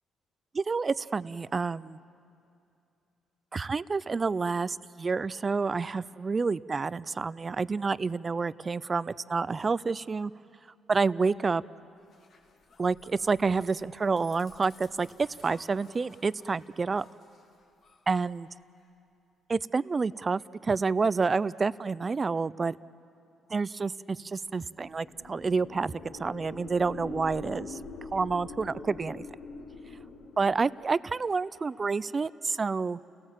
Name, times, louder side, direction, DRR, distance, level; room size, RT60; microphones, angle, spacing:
voice 1, 0.5-2.0 3.5-10.3 10.9-11.6 12.8-15.1 15.4-17.0 18.1-18.5 19.5-22.8 23.5-27.8 28.1-29.2 30.4-33.0, right 4 dB, 30° right, 19 dB, 0.4 m, -29 dB
sound 1, 12.0-18.9, left 4 dB, 60° left, 2.4 m, -58 dB
sound 2, 24.7-30.8, left 4 dB, 75° left, 1.9 m, -44 dB
30.0 x 17.5 x 7.4 m, 2.6 s
cardioid pair, 90°, 0 cm